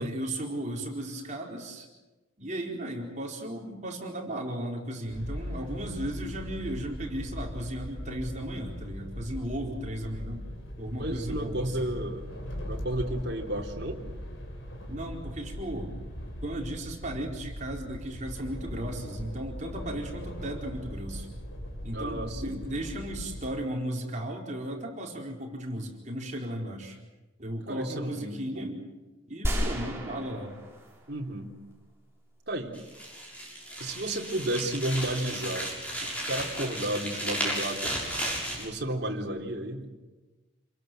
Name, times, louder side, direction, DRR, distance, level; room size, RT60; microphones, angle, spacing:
voice 1, 0.0-1.9 2.4-10.5 10.8-11.9 14.9-15.9 16.4-21.3 21.8-27.0 27.4-28.9 29.3-30.5, right 1 dB, 35° right, 0 dB, 4.6 m, -35 dB
sound 1, 5.1-23.5, equal, 75° left, 5.6 m, -39 dB
voice 2, 11.0-12.4 12.7-14.0 21.9-22.6 27.7-28.7 31.1-31.5 32.5-32.7 33.8-35.7 36.0-37.9 38.5-39.9, right 1 dB, 55° right, 1 dB, 3.6 m, -32 dB
sound 2, 29.4-31.4 31.7-31.8, equal, 10° right, 4.6 m, -32 dB
sound 3, 32.7-38.7, right 1 dB, 5° left, 6.9 m, -34 dB
28.5 x 22.0 x 7.9 m, 1.2 s
head